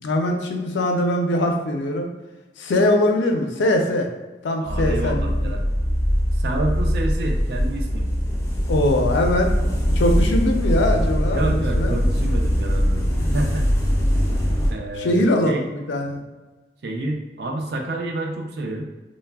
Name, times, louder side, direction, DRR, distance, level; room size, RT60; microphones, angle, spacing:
voice 1, 0.0-2.1 2.6-4.1 4.4-5.5 8.7-9.5 10.0-12.0 15.0-16.2, left 1 dB, 85° left, 3 dB, 0.4 m, -21 dB
voice 2, 4.6-5.6 6.4-8.1 11.3-13.0 13.3-13.7 14.7-15.6 16.8-18.9, right 2 dB, 60° right, 1 dB, 0.4 m, -28 dB
sound 1, 4.7-14.7, equal, 15° left, 0.4 m, -21 dB
3.3 x 2.0 x 2.2 m, 1.2 s
head